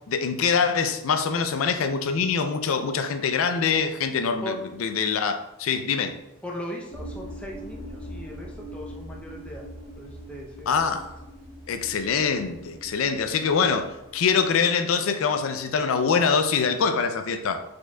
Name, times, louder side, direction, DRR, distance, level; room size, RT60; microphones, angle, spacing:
voice 1, 0.1-6.1 10.7-11.1 11.7-17.6, left 5 dB, 85° left, 8 dB, 0.4 m, -24 dB
voice 2, 6.4-9.7 10.0-10.9, left 1 dB, 5° left, -1 dB, 0.6 m, -38 dB
sound 1, 6.9-14.4, equal, 35° left, 1.2 m, -42 dB
4.6 x 4.4 x 2.3 m, 0.91 s
head